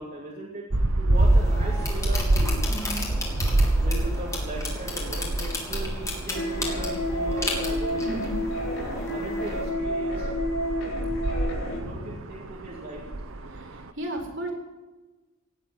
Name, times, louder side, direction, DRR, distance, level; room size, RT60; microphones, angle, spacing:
voice 1, 0.0-2.6 3.8-8.2 9.1-10.3 11.6-13.0, right 1 dB, 40° right, -4 dB, 2.7 m, -38 dB
sound 1, 0.7-13.9, right 1 dB, 75° right, 1.1 m, -27 dB
sound 2, 1.1-9.7, left 2 dB, 15° left, 3.4 m, -35 dB
voice 2, 2.6-3.2 8.0-8.4 11.7-12.2 13.4-14.5, right 1 dB, 60° right, 0 dB, 4.6 m, -35 dB
sound 3, 6.3-11.8, equal, 70° left, 3.8 m, -30 dB
18.5 x 8.4 x 9.4 m, 1.1 s
head